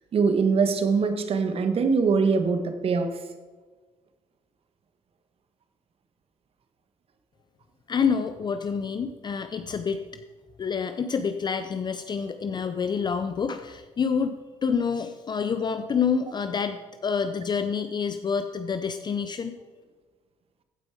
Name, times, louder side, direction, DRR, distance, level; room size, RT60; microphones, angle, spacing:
voice 1, 0.1-3.2, right 5 dB, 45° right, 8 dB, 1.3 m, -23 dB
voice 2, 7.9-10.0 10.6-19.5, left 6 dB, 35° left, 9 dB, 0.6 m, -28 dB
15.0 x 5.3 x 4.7 m, 1.4 s
cardioid pair, 90°, 13 cm